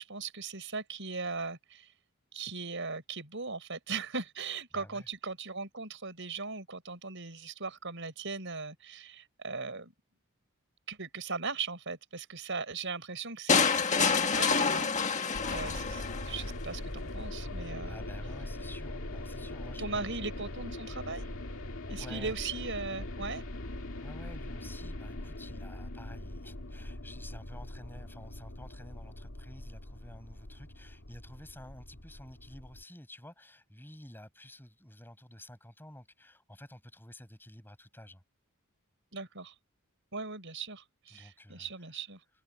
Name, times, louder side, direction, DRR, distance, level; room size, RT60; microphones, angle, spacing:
voice 1, 0.0-1.9 2.3-9.9 10.9-18.0 19.8-21.3 21.9-23.4 39.1-39.5 40.1-42.2, right 4 dB, 60° right, 6.4 m, -39 dB
voice 2, 4.7-5.1 15.6-15.8 17.8-20.2 21.9-22.4 24.0-38.2 41.1-41.7, left 1 dB, 10° left, 5.5 m, -51 dB
sound 1, 13.5-16.5, left 5 dB, 35° left, 1.6 m, -27 dB
sound 2, 15.3-32.8, left 1 dB, 65° left, 2.4 m, -41 dB
open air
head